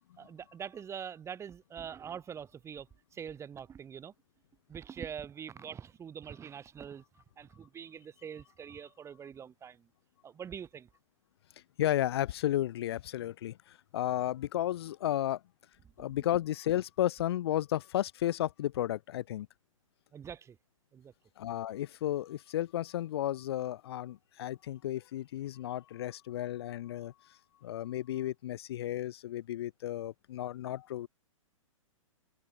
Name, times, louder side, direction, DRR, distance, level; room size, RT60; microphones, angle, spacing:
voice 1, 0.2-2.9 3.1-4.1 4.7-7.0 7.4-9.8 10.2-10.9 16.0-16.1 20.1-20.6 20.9-21.1, right 8 dB, 15° right, 5.2 m, -44 dB
voice 2, 11.8-15.4 16.0-19.5 21.4-31.1, left 13 dB, 50° left, 2.0 m, -33 dB
figure-of-eight pair, 110°, 17 cm